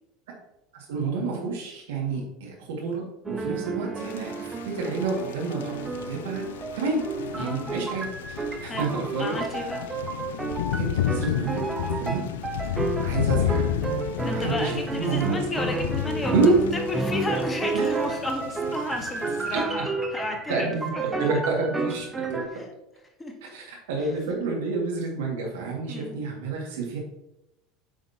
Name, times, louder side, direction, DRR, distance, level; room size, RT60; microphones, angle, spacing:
voice 1, 0.7-7.0 7.3-9.7 10.7-11.6 12.0-12.2 12.6-13.7 14.3-15.4 16.3-16.6 17.7-17.9 19.5-19.6 20.5-20.9 21.2-22.1 22.3-22.5 23.4-27.0, right 4 dB, 65° right, -1 dB, 2.1 m, -29 dB
sound 1, 3.2-22.5, right 3 dB, 15° right, 1.0 m, -31 dB
Thunder / Rain, 4.0-19.6, left 11 dB, 70° left, 0.4 m, -32 dB
voice 2, 7.4-7.7 8.6-8.9 9.2-9.9 12.1-12.3 14.2-16.3 16.9-21.2 22.5-22.7 23.2-23.3 25.9-26.2, left 2 dB, 15° left, 4 dB, 1.4 m, -33 dB
8.9 x 5.7 x 2.9 m, 0.88 s
figure-of-eight pair, 75°, 0 cm